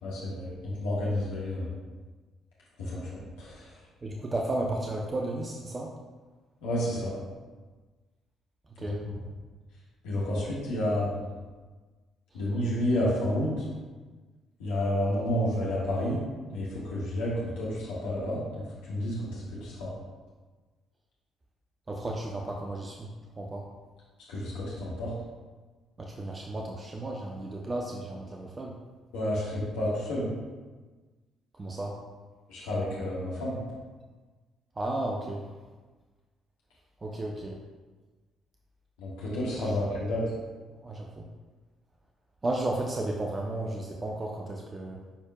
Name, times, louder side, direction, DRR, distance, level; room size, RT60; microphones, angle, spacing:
voice 1, 0.0-1.7 2.8-3.7 6.6-7.1 10.0-11.2 12.3-13.6 14.6-16.2 16.5-18.6 18.9-19.9 24.3-25.1 29.1-30.3 32.5-33.6 39.0-40.2, left 1 dB, 70° left, -7 dB, 1.6 m, -30 dB
voice 2, 4.0-5.9 8.8-9.0 12.3-12.4 15.3-15.4 21.9-23.1 23.4-23.7 26.0-28.8 31.5-32.0 34.7-35.5 37.0-37.6 39.6-39.8 40.7-41.3 42.4-45.0, right 2 dB, 30° right, 0 dB, 0.8 m, -34 dB
11.5 x 4.5 x 2.3 m, 1.3 s
figure-of-eight pair, 45°, 0 cm